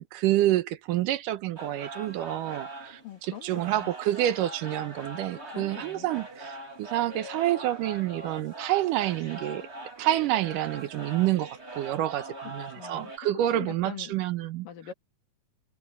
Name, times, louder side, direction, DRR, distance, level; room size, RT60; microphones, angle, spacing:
voice 1, 0.0-3.0 3.4-9.7 10.0-14.7, right 13 dB, 80° right, 2.5 m, -28 dB
sound 1, 1.6-13.2, right 2 dB, 20° right, 3.0 m, -42 dB
voice 2, 3.0-3.9 5.5-6.1 12.6-14.1 14.6-14.9, left 9 dB, 80° left, 4.0 m, -43 dB
omnidirectional pair, 3.9 m